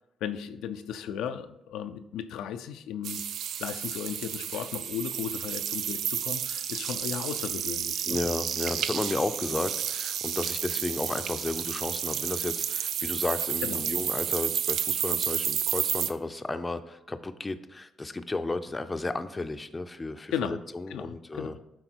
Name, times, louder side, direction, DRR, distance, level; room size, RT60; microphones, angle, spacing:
voice 1, 0.2-3.2 3.6-8.2 13.6-13.8 20.3-20.6 20.9-21.6, left 8 dB, 90° left, 8 dB, 0.4 m, -35 dB
sound 1, 3.0-16.1, right 9 dB, 75° right, 0.4 m, -31 dB
voice 2, 8.1-21.6, left 2 dB, 20° left, 10 dB, 0.5 m, -33 dB
9.0 x 3.8 x 4.5 m, 0.90 s
cardioid pair, 90°, 0 cm